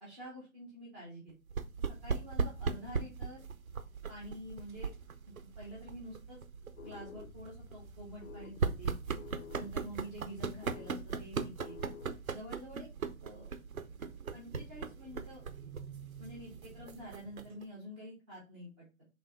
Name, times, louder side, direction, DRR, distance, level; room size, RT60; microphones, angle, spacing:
voice 1, 0.0-1.3 1.9-3.4 4.1-4.9 5.6-6.4 6.8-9.0 9.5-11.8 12.3-12.9 13.2-13.6 14.3-15.4 16.2-19.1, equal, ahead, -7 dB, 0.4 m, -48 dB
sound 1, 1.5-17.6, right 5 dB, 85° right, 0.7 m, -39 dB
sound 2, 6.8-12.5, left 6 dB, 70° left, 0.7 m, -52 dB
4.0 x 3.0 x 4.3 m, 0.30 s
figure-of-eight pair, 140°, 41 cm